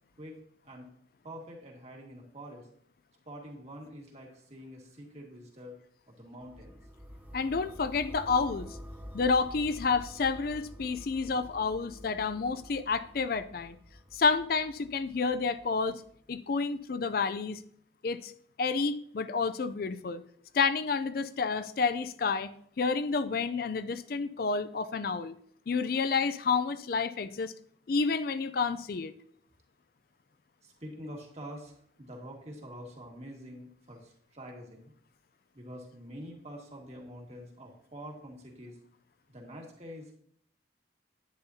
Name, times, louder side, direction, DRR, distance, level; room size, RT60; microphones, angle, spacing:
voice 1, 0.2-0.9 1.2-2.7 3.3-5.8 6.1-6.8 30.6-34.9 35.5-38.8 39.3-40.1, equal, 35° right, 0 dB, 1.8 m, -46 dB
sound 1, 6.4-16.3, equal, 10° right, 0.8 m, -48 dB
voice 2, 7.3-8.7 9.1-13.8 14.1-16.0 16.3-17.6 18.0-18.3 18.6-20.2 20.5-22.5 22.8-25.3 25.7-27.5 27.9-29.1, left 4 dB, 50° left, 13 dB, 0.4 m, -29 dB
10.5 x 9.7 x 2.8 m, 0.64 s
head